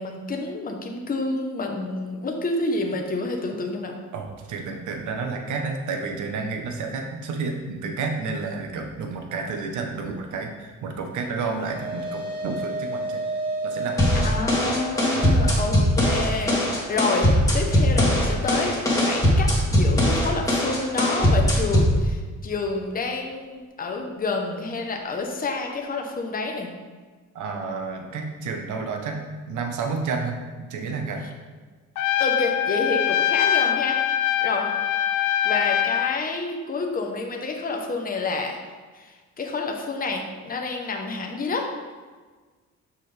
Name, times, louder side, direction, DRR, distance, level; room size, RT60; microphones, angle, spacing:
voice 1, 0.0-4.0 14.2-26.7 32.2-34.0 34.4-34.7 35.4-38.6 38.9-41.7, left 3 dB, 30° left, 2 dB, 0.9 m, -29 dB
voice 2, 4.1-13.2 13.6-14.2 15.1-15.6 27.3-30.4 30.7-31.3, right 4 dB, 75° right, 3 dB, 1.0 m, -31 dB
sound 1, 11.1-19.7, right 2 dB, 15° right, 1.6 m, -34 dB
sound 2, 14.0-22.0, left 1 dB, 10° left, 2.0 m, -20 dB
Trumpet, 31.9-36.2, left 11 dB, 75° left, 0.5 m, -23 dB
6.5 x 5.5 x 3.4 m, 1.4 s
cardioid pair, 90°, 30 cm